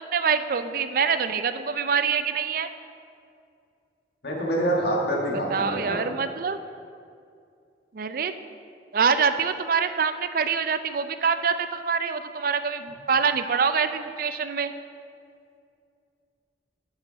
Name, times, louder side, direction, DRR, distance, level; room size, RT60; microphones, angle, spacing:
voice 1, 0.1-2.7 5.5-6.6 7.9-8.3 8.9-14.7, right 6 dB, 50° right, 10 dB, 0.4 m, -25 dB
voice 2, 4.2-6.0, right 1 dB, 65° left, -3 dB, 1.6 m, -26 dB
8.8 x 5.6 x 5.9 m, 2.4 s
head